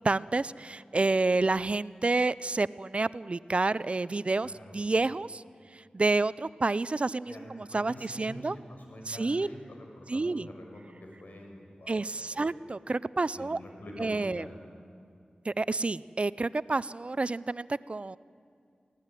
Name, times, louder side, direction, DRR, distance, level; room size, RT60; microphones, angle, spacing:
voice 1, 0.0-5.4 5.7-8.6 9.1-9.5 10.1-10.5 11.9-13.6 14.0-14.4 15.4-18.2, right 3 dB, 45° right, 18 dB, 0.5 m, -29 dB
voice 2, 4.4-4.8 7.3-12.5 13.3-14.5, left 1 dB, 70° left, 1 dB, 6.3 m, -46 dB
23.5 x 16.5 x 9.8 m, 2.4 s
wide cardioid pair, 55°, 3 cm